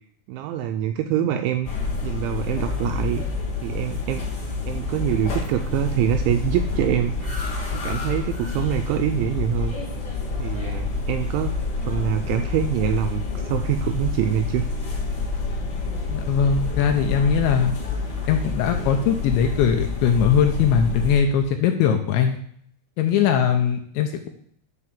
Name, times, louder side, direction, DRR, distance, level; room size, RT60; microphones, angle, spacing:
voice 1, 0.3-1.7 2.0-3.2 3.6-4.3 4.7-7.5 7.7-9.7 10.4-14.7, right 10 dB, 85° right, 6 dB, 2.7 m, -25 dB
sound 1, 1.6-21.1, left 4 dB, 35° left, 2.4 m, -28 dB
sound 2, 2.2-21.5, right 6 dB, 50° right, 1.7 m, -40 dB
voice 2, 16.1-17.7 18.3-22.4 23.0-24.3, left 7 dB, 75° left, 5 dB, 2.8 m, -20 dB
12.0 x 4.1 x 7.4 m, 0.62 s
omnidirectional pair, 5.9 m